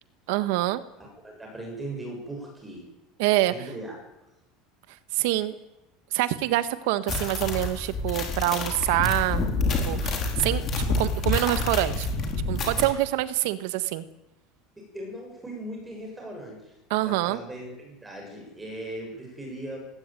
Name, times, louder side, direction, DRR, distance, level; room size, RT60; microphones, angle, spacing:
voice 1, 0.3-0.8 3.2-3.5 5.1-5.5 6.1-9.5 9.9-10.6 11.0-12.1 12.5-14.0 16.9-17.4, right 15 dB, 70° right, 13 dB, 1.5 m, -25 dB
voice 2, 1.0-2.8 3.5-4.0 14.8-16.7 17.0-19.8, right 1 dB, 5° right, 0 dB, 7.2 m, -38 dB
sound 1, 7.1-12.9, left 3 dB, 30° left, 4.2 m, -28 dB
19.0 x 16.5 x 9.2 m, 0.93 s
cardioid pair, 170°, 0 cm